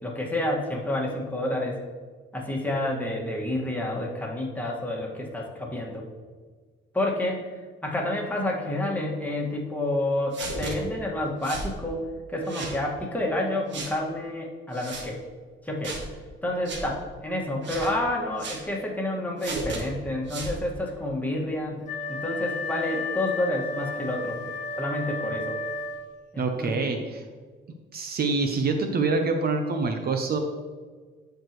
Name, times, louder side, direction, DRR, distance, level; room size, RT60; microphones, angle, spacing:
voice 1, 0.0-1.8 2.3-6.0 6.9-7.4 7.8-12.0 12.3-15.2 15.6-15.9 16.4-24.5 24.8-25.5 26.3-27.0, left 1 dB, 10° left, -2 dB, 1.8 m, -29 dB
sound 1, 10.3-10.7 11.4-11.7 12.4-12.8 13.7-13.9 14.7-15.1 15.8-16.1 16.6-16.8 17.6-17.9 18.4-18.6 19.4-19.8 20.3-20.6, right 3 dB, 65° right, 1.5 m, -34 dB
Wind instrument woodwind instrument, 21.8-26.3, left 2 dB, 40° left, 1.5 m, -33 dB
voice 2, 26.4-27.2 27.9-30.4, right 3 dB, 50° right, 5 dB, 0.8 m, -26 dB
12.5 x 4.7 x 3.1 m, 1.5 s
cardioid pair, 90°, 20 cm